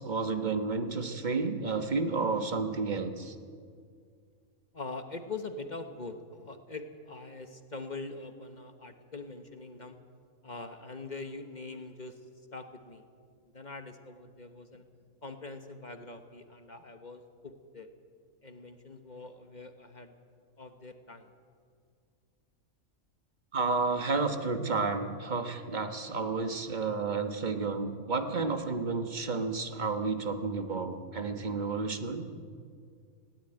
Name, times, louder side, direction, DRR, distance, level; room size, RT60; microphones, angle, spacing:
voice 1, 0.0-3.3 23.5-32.3, right 4 dB, 35° right, 7 dB, 1.4 m, -31 dB
voice 2, 4.7-10.0 10.4-12.2 12.5-13.0 13.5-14.8 15.2-17.9 18.4-20.1 20.6-21.3, left 3 dB, 35° left, 7 dB, 1.3 m, -43 dB
19.5 x 17.0 x 9.0 m, 2.1 s
omnidirectional pair, 1.5 m